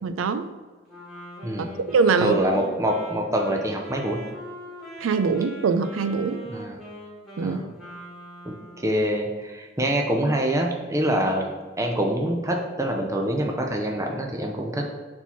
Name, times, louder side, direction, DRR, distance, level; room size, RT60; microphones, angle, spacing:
voice 1, 0.0-0.5 1.6-2.4 5.0-6.4 7.4-7.6, right 5 dB, 85° right, 11 dB, 0.4 m, -23 dB
Wind instrument woodwind instrument, 0.9-9.1, equal, ahead, 1.9 m, -41 dB
voice 2, 1.4-1.8 2.2-4.2 6.5-6.8 7.4-7.7 8.5-8.6 8.8-14.9, right 1 dB, 15° right, 1 dB, 0.6 m, -25 dB
4.4 x 4.3 x 5.6 m, 1.4 s
head